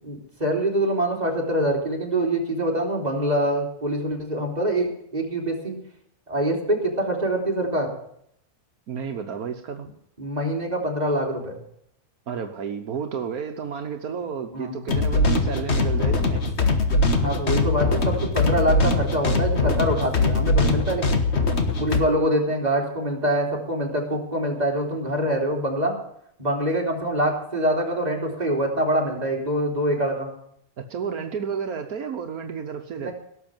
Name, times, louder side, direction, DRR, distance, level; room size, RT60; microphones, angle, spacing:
voice 1, 0.0-5.8 6.3-7.9 10.2-11.6 14.5-14.8 15.2-15.4 17.1-21.1 21.8-26.0 26.4-30.3 33.0-33.1, right 1 dB, 25° right, -1 dB, 3.5 m, -25 dB
voice 2, 8.9-9.9 12.3-16.4 30.8-33.1, right 6 dB, 75° right, 4 dB, 1.5 m, -31 dB
sound 1, 14.9-22.0, left 2 dB, 50° left, 1.7 m, -22 dB
17.5 x 6.9 x 9.0 m, 0.69 s
omnidirectional pair, 1.6 m